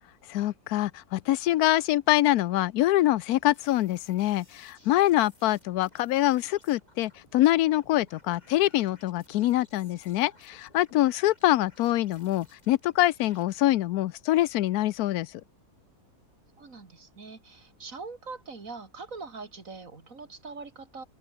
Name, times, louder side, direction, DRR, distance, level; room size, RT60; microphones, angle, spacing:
voice 1, 0.3-15.4, left 15 dB, 75° left, 1.1 m, -25 dB
sound 1, 3.5-13.4, left 2 dB, 25° left, 3.2 m, -60 dB
voice 2, 16.6-21.0, right 4 dB, 55° right, 3.2 m, -42 dB
open air
omnidirectional pair, 1.6 m